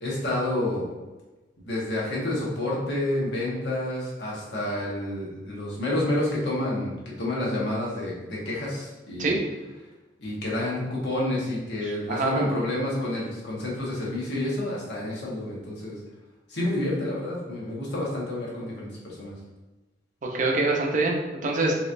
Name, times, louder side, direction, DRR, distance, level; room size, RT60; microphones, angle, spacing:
voice 1, 0.0-0.8 1.6-9.4 10.2-16.0 16.5-19.3, left 1 dB, 75° left, -5 dB, 1.2 m, -29 dB
voice 2, 11.8-12.5 20.2-21.8, right 2 dB, 45° right, 0 dB, 0.6 m, -25 dB
3.9 x 3.0 x 2.5 m, 1.1 s
head